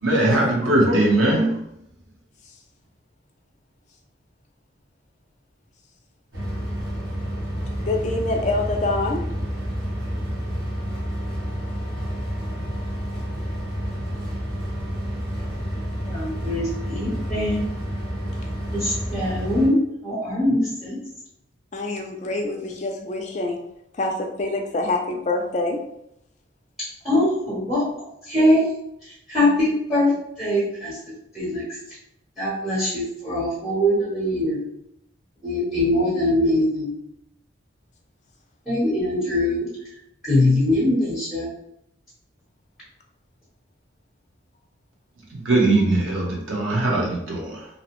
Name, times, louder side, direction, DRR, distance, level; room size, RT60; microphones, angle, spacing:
voice 1, 0.0-1.6 45.3-47.7, right 2 dB, 90° right, -2 dB, 0.9 m, -20 dB
sound 1, 6.3-19.7, equal, 60° right, 1.0 m, -29 dB
voice 2, 7.8-9.3 21.7-23.6 23.9-25.8, left 2 dB, 35° left, 2 dB, 0.4 m, -25 dB
voice 3, 16.0-17.6 18.7-21.0 26.8-27.8 28.2-28.6 29.0-31.0 31.3-31.7 32.4-34.6 35.4-36.9 38.7-39.7 40.2-41.5, left 1 dB, ahead, -8 dB, 0.9 m, -22 dB
2.7 x 2.0 x 2.9 m, 0.77 s
head